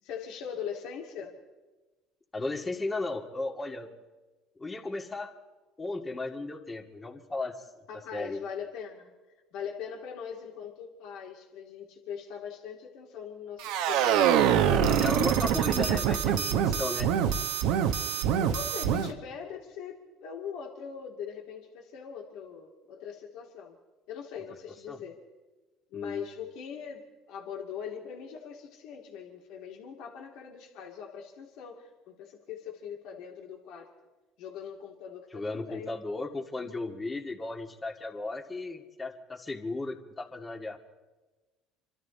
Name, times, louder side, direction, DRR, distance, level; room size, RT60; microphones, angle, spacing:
voice 1, 0.0-1.3 7.9-9.1 9.5-15.2 18.4-23.8 24.1-25.2 25.9-33.9 34.4-36.0, left 7 dB, 70° left, 0 dB, 2.3 m, -41 dB
voice 2, 2.3-3.9 4.6-5.3 5.8-7.7 8.1-8.4 14.8-17.1 24.9-25.0 25.9-26.3 35.3-40.8, left 2 dB, 20° left, 1 dB, 2.2 m, -35 dB
sound 1, 13.6-19.1, right 8 dB, 75° right, 1.1 m, -25 dB
27.0 x 12.5 x 4.1 m, 1.2 s
hypercardioid pair, 75°, 0 cm